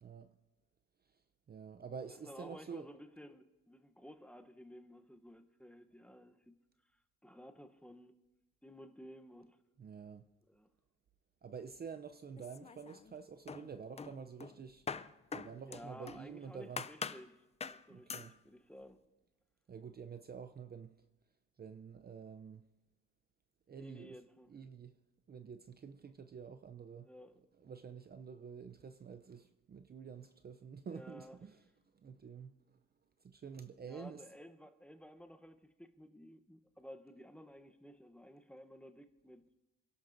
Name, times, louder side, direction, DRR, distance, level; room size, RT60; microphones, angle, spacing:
voice 1, 0.0-0.3 1.1-1.2 1.5-2.9 9.8-10.2 11.4-14.9 15.3-16.9 17.9-18.3 19.7-20.9 21.6-22.6 23.7-24.2 24.5-25.0 25.3-27.1 27.6-31.6 31.9-32.8 33.2-34.2, right 6 dB, 30° right, 0.6 m, -49 dB
voice 2, 2.2-6.6 7.2-8.1 8.6-9.6 10.5-10.7 15.7-17.4 17.7-19.0 23.8-24.5 27.0-27.4 30.9-31.4 33.8-39.4, equal, 5° left, 0.9 m, -54 dB
sound 1, 12.4-13.1 13.5-16.3 16.8-17.3 17.6-17.8 18.1-18.3, left 5 dB, 20° left, 0.4 m, -44 dB
28.0 x 11.5 x 2.6 m
cardioid pair, 90°, 30 cm